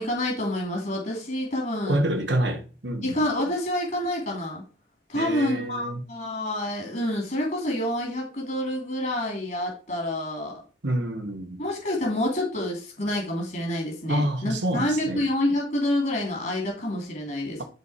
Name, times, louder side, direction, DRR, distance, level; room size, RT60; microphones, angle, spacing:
voice 1, 0.0-2.0 3.0-4.6 5.1-10.6 11.6-17.6, left 1 dB, 45° left, 2.8 m, -28 dB
voice 2, 1.9-3.2 5.1-6.0 10.8-11.6 14.1-15.2, right 1 dB, 65° right, 1.5 m, -27 dB
12.0 x 4.2 x 4.3 m
head